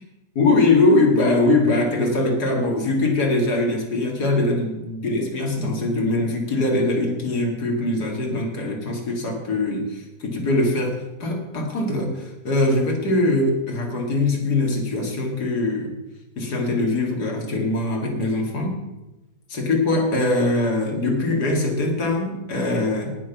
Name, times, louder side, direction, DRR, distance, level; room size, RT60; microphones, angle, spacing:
voice 1, 0.4-15.9 16.4-18.8 19.5-23.1, left 2 dB, 75° left, 2 dB, 2.8 m, -22 dB
18.5 x 6.2 x 5.9 m, 1.0 s
omnidirectional pair, 1.7 m